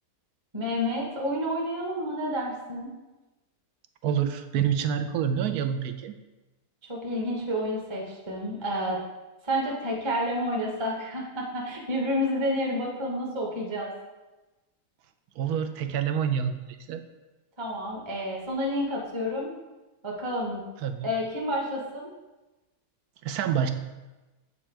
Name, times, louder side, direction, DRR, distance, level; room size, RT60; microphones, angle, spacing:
voice 1, 0.5-2.9 6.9-9.0 9.4-13.9 17.6-19.5 20.0-20.6 21.0-22.1, equal, 20° right, -2 dB, 0.8 m, -29 dB
voice 2, 4.0-6.2 15.4-17.0 20.8-21.1 23.2-23.7, right 8 dB, 75° right, 9 dB, 1.0 m, -27 dB
7.4 x 4.4 x 4.5 m, 1.1 s
omnidirectional pair, 1.8 m